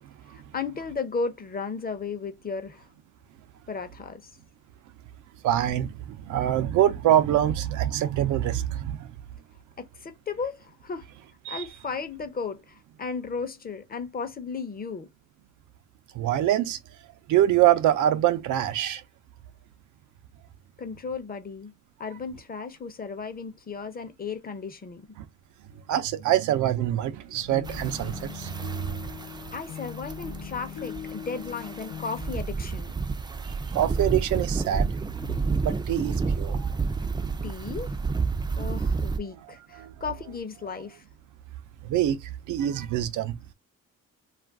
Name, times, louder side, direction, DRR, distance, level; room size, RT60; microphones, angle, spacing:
voice 1, 0.3-2.9 3.7-4.2 9.8-11.1 11.5-15.1 20.8-21.7 22.0-25.1 29.5-32.9 37.4-37.9 38.6-41.0, left 5 dB, 30° left, 0.7 m, -35 dB
voice 2, 5.4-9.1 11.5-11.6 16.1-16.8 17.3-19.0 25.9-29.0 33.7-34.9 35.6-36.7 39.7-39.9 41.8-42.2 42.5-43.4, right 12 dB, 80° right, 0.6 m, -25 dB
sound 1, 27.3-32.5, left 9 dB, 80° left, 0.8 m, -40 dB
sound 2, 27.6-39.2, right 4 dB, 15° right, 0.4 m, -30 dB
2.5 x 2.2 x 3.4 m
cardioid pair, 90°, 30 cm